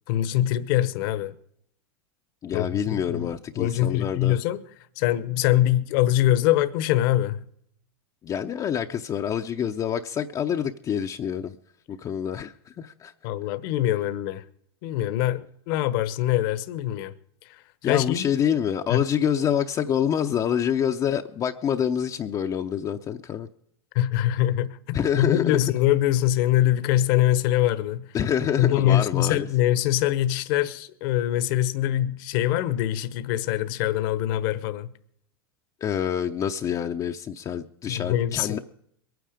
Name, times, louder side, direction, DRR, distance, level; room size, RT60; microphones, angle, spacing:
voice 1, 0.1-1.3 2.5-3.3 3.6-4.6 5.0-7.4 13.2-14.4 14.8-17.1 17.8-18.3 18.9-19.0 23.9-28.1 28.6-34.9 37.9-38.6, left 13 dB, 60° left, 1.1 m, -23 dB
voice 2, 2.4-4.4 8.2-11.6 11.9-13.1 17.8-23.5 24.9-25.7 28.1-29.5 35.8-38.6, left 8 dB, 30° left, 0.7 m, -27 dB
22.0 x 9.4 x 5.0 m
hypercardioid pair, 120°, 13 cm